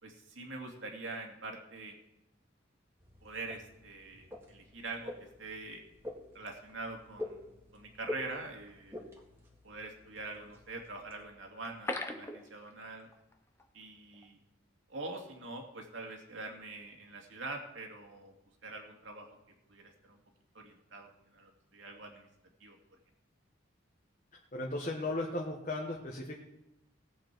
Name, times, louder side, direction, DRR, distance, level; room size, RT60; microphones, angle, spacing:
voice 1, 0.0-2.0 3.2-5.1 5.4-5.8 6.3-9.0 9.6-13.1 13.7-14.4 14.9-18.3 18.6-19.4 19.7-20.2 20.5-22.3 22.6-22.8, right 3 dB, 70° right, 2 dB, 2.4 m, -44 dB
sound 1, 3.0-11.3, left 1 dB, 15° right, 1.9 m, -47 dB
sound 2, 11.6-13.3 13.6-13.7 14.1-14.3, left 2 dB, 15° left, 0.9 m, -39 dB
voice 2, 24.5-26.3, left 2 dB, 40° left, -1 dB, 1.3 m, -36 dB
18.5 x 8.0 x 4.6 m, 0.88 s
head